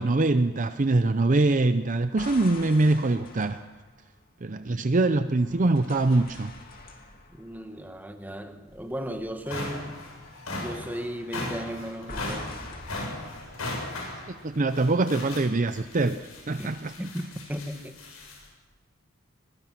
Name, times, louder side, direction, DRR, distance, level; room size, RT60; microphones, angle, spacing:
voice 1, 0.0-3.6 4.4-6.5 14.3-16.2 16.5-16.9, right 2 dB, 35° right, 0.6 m, -23 dB
sound 1, 2.2-4.9 5.4-8.8 9.1-9.4 12.1-13.7, left 2 dB, 40° left, 2.7 m, -45 dB
voice 2, 7.3-10.0 10.6-12.6 16.6-16.7 17.0-18.0, equal, 10° right, 1.2 m, -36 dB
sound 2, 8.7-8.8 9.2-18.5, left 2 dB, 80° left, 7.2 m, -38 dB
22.0 x 21.5 x 6.0 m
head